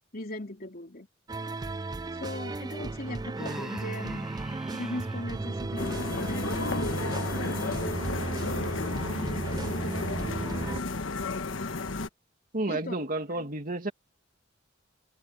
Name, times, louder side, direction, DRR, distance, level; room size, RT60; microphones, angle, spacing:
voice 1, 0.1-1.1 2.2-4.3 4.7-8.0 8.4-10.4 12.7-13.0 13.3-13.5, left 1 dB, 50° left, 4.0 m, -39 dB
sound 1, 1.3-10.8, right 2 dB, 20° right, 0.4 m, -35 dB
Human voice, 3.3-5.2, equal, ahead, 1.1 m, -43 dB
sound 2, 5.8-12.1, left 3 dB, 85° left, 1.3 m, -33 dB
voice 2, 12.5-13.9, right 2 dB, 45° right, 2.5 m, -31 dB
head